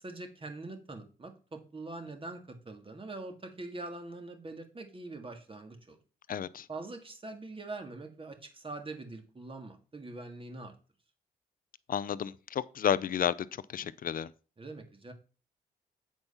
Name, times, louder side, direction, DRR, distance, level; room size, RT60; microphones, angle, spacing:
voice 1, 0.0-6.0 6.7-10.7 14.6-15.1, right 2 dB, 30° right, 2.0 m, -43 dB
voice 2, 6.3-6.7 11.9-13.5 13.7-14.3, left 9 dB, 55° left, 0.5 m, -31 dB
8.7 x 4.4 x 5.6 m
supercardioid pair, 55°, 17 cm